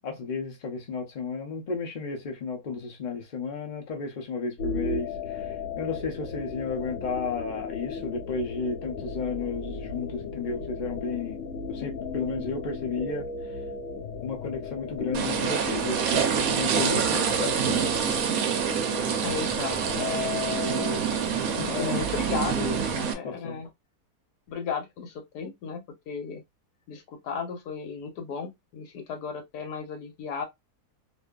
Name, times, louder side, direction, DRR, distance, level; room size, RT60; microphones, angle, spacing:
voice 1, 0.0-13.3 14.2-17.8 20.3-21.0 21.6-22.1 22.5-23.6, left 4 dB, 40° left, 0.6 m, -33 dB
sound 1, 4.6-23.1, left 4 dB, 60° left, 1.1 m, -36 dB
sound 2, 15.1-23.1, right 7 dB, 70° right, 1.0 m, -26 dB
voice 2, 19.2-20.6 21.7-22.7 23.1-23.7 24.5-26.4 26.9-30.5, left 6 dB, 80° left, 1.3 m, -35 dB
2.7 x 2.6 x 2.2 m
omnidirectional pair, 1.7 m